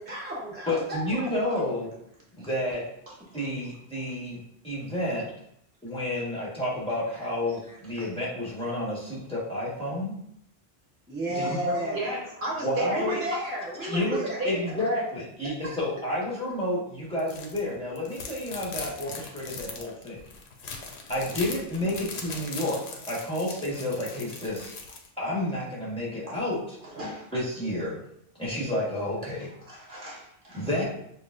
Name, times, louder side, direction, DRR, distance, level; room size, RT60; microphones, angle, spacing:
voice 1, 0.1-1.3 2.4-2.5 11.1-12.0 12.9-14.4, equal, 10° right, -6 dB, 0.9 m, -33 dB
voice 2, 0.7-1.9 2.4-2.8 3.3-5.3 5.8-10.1 11.3-12.1 12.6-13.2 13.8-20.2 21.1-24.7 25.2-26.7 27.3-28.0 28.4-29.5 30.5-30.8, left 1 dB, 5° left, -8 dB, 1.3 m, -30 dB
voice 3, 11.9-13.2 14.1-14.7 26.3-26.4 26.8-27.3 29.6-30.7, right 1 dB, 60° right, -3 dB, 1.0 m, -34 dB
sound 1, 17.2-17.6 18.0-25.1, left 4 dB, 85° left, 0.9 m, -40 dB
6.5 x 2.4 x 2.5 m, 0.71 s
omnidirectional pair, 1.0 m